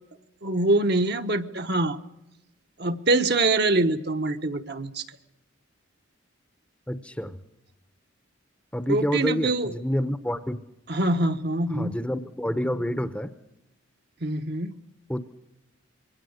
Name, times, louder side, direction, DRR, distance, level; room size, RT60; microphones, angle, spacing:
voice 1, 0.4-2.0 2.8-5.0 8.9-9.7 10.9-11.9 14.2-14.8, right 2 dB, 50° right, 7 dB, 1.1 m, -24 dB
voice 2, 6.9-7.4 8.7-10.6 11.7-13.3 15.1-15.2, equal, 5° left, 11 dB, 0.8 m, -28 dB
27.0 x 21.5 x 6.5 m, 0.94 s
head